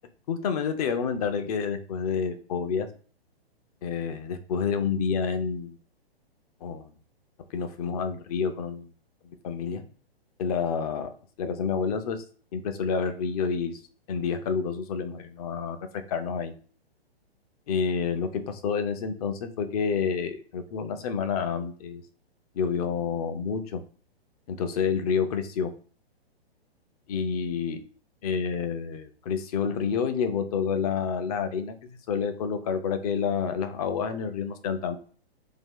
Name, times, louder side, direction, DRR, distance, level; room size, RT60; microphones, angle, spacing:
voice 1, 0.3-2.9 3.8-5.7 6.6-6.9 7.5-8.9 9.4-9.8 10.4-11.1 11.4-12.2 12.5-13.8 14.1-15.8 16.1-16.5 17.7-22.0 22.6-23.8 24.5-25.7 27.1-27.8 28.2-35.0, left 6 dB, 35° left, 8 dB, 0.6 m, -29 dB
2.8 x 2.3 x 3.7 m, 0.42 s
hypercardioid pair, 130°, 32 cm